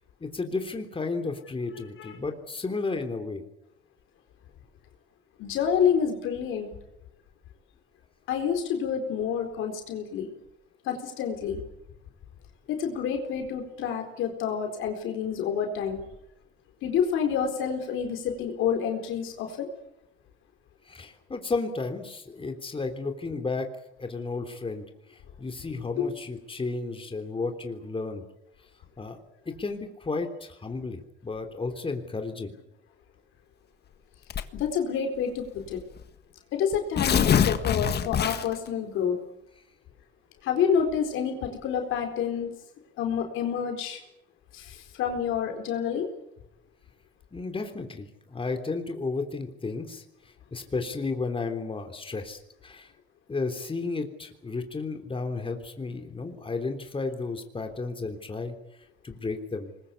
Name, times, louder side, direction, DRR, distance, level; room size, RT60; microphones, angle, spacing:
voice 1, 0.2-3.4 20.9-23.7 24.0-24.8 25.1-28.2 29.0-29.2 29.5-32.6 47.3-50.0 50.5-52.9 53.3-58.5 59.0-59.7, left 3 dB, 25° left, 5 dB, 3.5 m, -33 dB
voice 2, 5.4-6.7 8.3-10.3 10.8-11.6 12.7-16.0 16.8-19.7 26.0-26.1 34.5-35.8 36.5-39.2 40.4-42.5 43.0-44.0 44.5-46.1, left 7 dB, 90° left, 4 dB, 4.3 m, -28 dB
Tearing, 34.3-34.7 35.6-35.7 36.0-36.1 36.7-38.7, left 8 dB, 55° left, 1.6 m, -24 dB
24.5 x 21.5 x 8.5 m, 0.83 s
cardioid pair, 90°, 20 cm